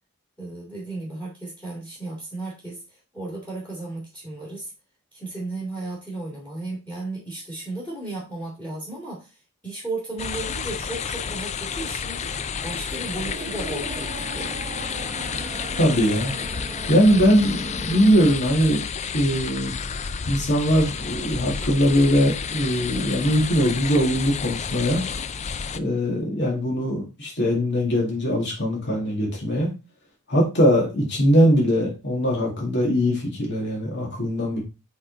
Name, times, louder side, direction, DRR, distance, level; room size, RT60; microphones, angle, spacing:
voice 1, 0.4-4.7 5.1-9.4 9.6-12.2 12.6-14.5 15.2-15.5, right 2 dB, 5° left, -3 dB, 2.3 m, -34 dB
sound 1, 10.2-25.8, left 6 dB, 30° left, 0.4 m, -31 dB
sound 2, 12.4-18.4, right 1 dB, 30° right, 0.9 m, -38 dB
voice 2, 15.8-16.3 16.9-18.8 19.1-19.8 20.3-25.0 25.7-29.7 30.3-34.6, equal, 55° left, -1 dB, 2.2 m, -21 dB
7.8 x 3.8 x 3.9 m, 0.28 s
head